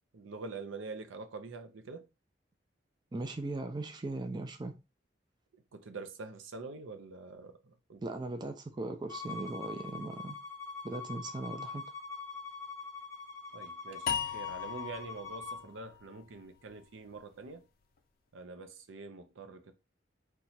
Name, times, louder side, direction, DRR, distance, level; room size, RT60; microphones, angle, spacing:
voice 1, 0.1-2.1 5.7-8.0 13.5-17.6 18.3-19.7, right 3 dB, 90° right, 0.5 m, -45 dB
voice 2, 3.1-4.8 8.0-10.4 10.8-11.8, right 2 dB, 20° right, 0.4 m, -38 dB
Bowed string instrument, 9.1-15.6, left 4 dB, 10° left, 0.8 m, -44 dB
sound 1, 14.1-17.3, left 8 dB, 50° left, 0.4 m, -38 dB
2.8 x 2.2 x 4.0 m
head